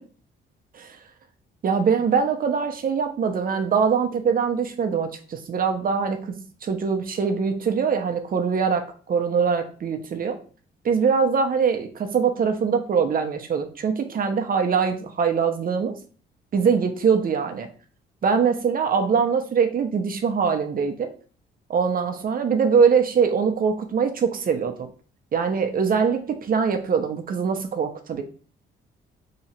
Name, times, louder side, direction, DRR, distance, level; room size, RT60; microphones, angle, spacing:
voice 1, 1.6-10.4 10.8-15.9 16.5-17.7 18.2-21.1 21.7-24.9 25.3-28.2, right 6 dB, 45° right, 5 dB, 0.7 m, -23 dB
2.9 x 2.4 x 4.2 m, 0.41 s
cardioid pair, 90°, 20 cm